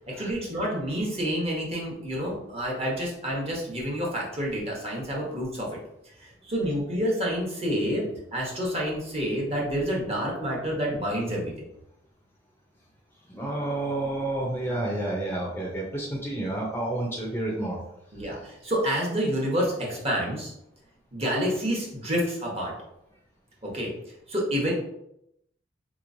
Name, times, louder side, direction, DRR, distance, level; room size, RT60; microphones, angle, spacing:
voice 1, 0.1-5.7 6.0-8.0 8.3-11.5 18.1-20.5 21.1-22.7 23.6-23.9 24.3-24.7, equal, 35° right, -3 dB, 1.0 m, -28 dB
voice 2, 13.3-17.8, right 1 dB, 10° left, -2 dB, 0.6 m, -30 dB
3.9 x 3.0 x 2.6 m, 0.80 s
head